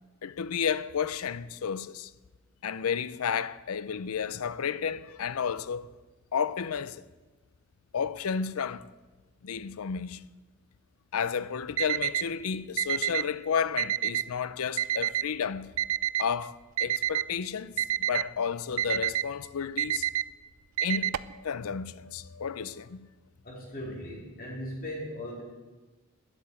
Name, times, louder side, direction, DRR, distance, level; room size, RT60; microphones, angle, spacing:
voice 1, 0.2-2.1 2.6-5.9 6.3-7.0 7.9-8.9 9.4-10.3 11.1-15.7 16.2-17.7 18.0-20.1 20.8-23.0, left 6 dB, 80° left, 0.5 m, -32 dB
Alarm, 11.8-12.2 12.8-13.2 13.8-14.2 14.8-15.2 15.8-16.2 16.8-17.2 17.8-18.2 18.8-19.2 19.8-20.2 20.8-21.3, right 11 dB, 70° right, 0.4 m, -28 dB
voice 2, 23.4-25.4, equal, 40° left, 3.6 m, -38 dB
10.5 x 8.1 x 8.6 m
head